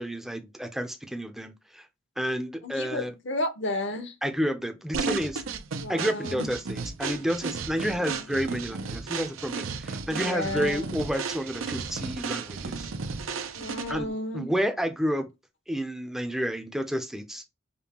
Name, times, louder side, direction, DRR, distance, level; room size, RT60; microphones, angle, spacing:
voice 1, 0.0-1.9 2.2-3.1 4.2-5.4 5.9-12.9 13.9-14.1 14.3-15.3 15.7-17.4, equal, ahead, 0.5 m, -30 dB
voice 2, 2.6-4.1 5.8-6.5 7.8-8.2 10.1-11.0 13.5-14.5, left 1 dB, 65° left, 0.8 m, -33 dB
sound 1, 4.9-14.1, right 5 dB, 85° right, 0.6 m, -34 dB
5.1 x 2.2 x 2.9 m
head